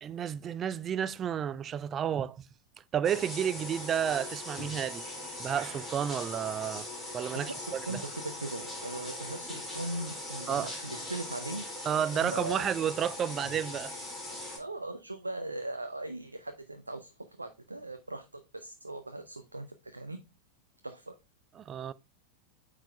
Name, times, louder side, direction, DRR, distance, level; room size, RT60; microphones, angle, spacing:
voice 1, 0.0-2.4 2.9-5.1 5.4-6.9 7.1-8.0 10.5-10.7 11.9-13.9 21.6-21.9, right 9 dB, 25° right, 0.3 m, -31 dB
sound 1, 3.0-14.6, left 1 dB, 5° left, 2.9 m, -40 dB
voice 2, 7.3-11.7 12.1-12.7 14.6-17.1 17.4-20.2 20.8-21.1, right 2 dB, 80° right, 0.5 m, -39 dB
8.9 x 4.8 x 2.2 m
figure-of-eight pair, 90°, 0 cm